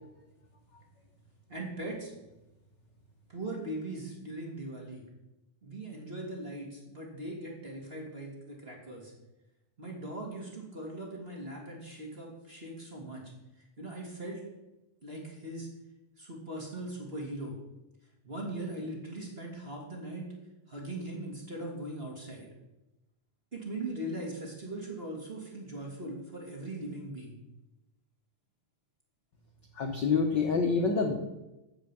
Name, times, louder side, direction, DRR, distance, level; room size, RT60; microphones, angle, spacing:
voice 1, 1.5-2.1 3.3-5.0 5.6-9.1 9.8-13.3 13.6-14.4 15.0-15.7 16.2-17.6 18.2-20.3 20.7-22.5 23.5-27.4, right 1 dB, 20° right, -1 dB, 2.3 m, -40 dB
voice 2, 29.8-31.2, left 5 dB, 65° left, 3 dB, 1.1 m, -27 dB
14.5 x 5.2 x 7.4 m, 0.98 s
omnidirectional pair, 3.4 m